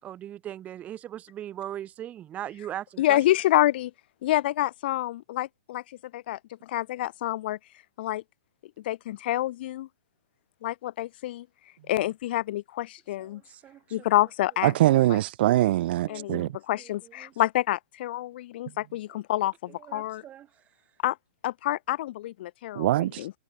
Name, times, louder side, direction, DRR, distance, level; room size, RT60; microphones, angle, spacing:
voice 1, 0.0-3.2 13.2-13.8 15.6-15.7 16.0-16.5 16.8-17.3 19.7-20.5, right 11 dB, 20° right, 6.0 m, -39 dB
voice 2, 3.0-3.9 4.2-5.8 6.1-7.6 8.0-8.2 8.8-9.9 10.6-11.5 11.9-13.4 13.9-14.7 15.1-15.2 16.1-20.2 21.0-21.2 21.4-22.9 23.2-23.3, left 15 dB, 50° left, 5.4 m, -27 dB
voice 3, 14.6-16.6 22.8-23.3, right 15 dB, 50° right, 1.9 m, -23 dB
hypercardioid pair, 150°, 7 cm